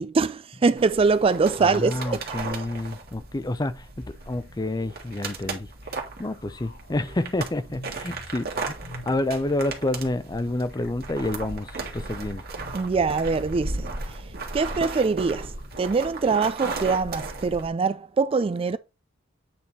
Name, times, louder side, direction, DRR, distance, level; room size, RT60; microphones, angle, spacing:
voice 1, 0.0-2.2 12.7-13.8 14.5-15.5 15.8-18.8, right 4 dB, 30° right, 0.3 m, -23 dB
sound 1, 0.8-17.7, right 3 dB, 50° right, 1.8 m, -36 dB
voice 2, 1.6-5.7 6.2-8.8 9.1-12.4, left 2 dB, 20° left, 0.6 m, -29 dB
sound 2, 4.0-17.6, left 1 dB, 65° left, 3.9 m, -49 dB
8.6 x 3.6 x 4.1 m
head